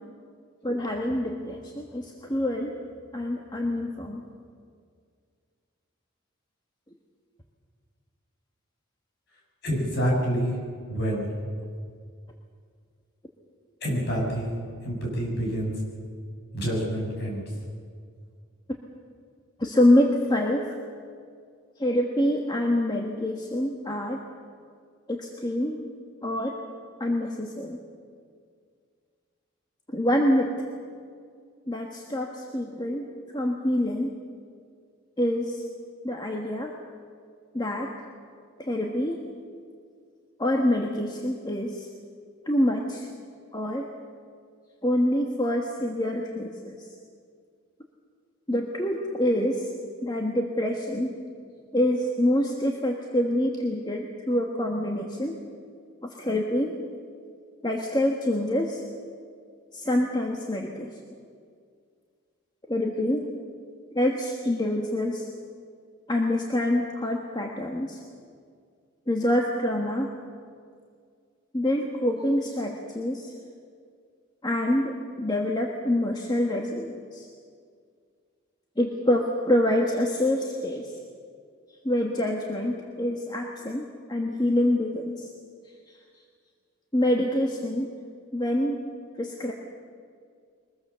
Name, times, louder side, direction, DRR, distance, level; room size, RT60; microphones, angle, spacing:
voice 1, 0.6-2.8 3.1-4.2 19.6-20.8 21.8-24.2 25.1-25.8 26.2-26.5 27.0-27.8 29.9-30.6 31.7-34.1 35.2-35.6 36.0-36.7 37.5-37.9 38.6-39.2 40.4-41.9 42.5-43.1 43.5-43.9 44.8-46.9 48.5-49.7 50.0-51.1 51.7-55.4 56.0-56.7 57.6-58.8 59.7-60.9 62.7-63.3 63.9-65.3 66.1-68.0 69.1-70.1 71.5-73.3 74.4-77.3 78.8-81.0 81.8-85.3 85.9-86.0 86.9-87.9 88.3-88.8 89.2-89.5, left 1 dB, 20° left, 1 dB, 1.4 m, -26 dB
voice 2, 9.6-10.6 10.9-11.3 13.8-14.6 14.8-15.7 16.5-17.4, equal, 50° left, -2 dB, 6.5 m, -27 dB
23.0 x 21.0 x 6.9 m, 2.1 s
head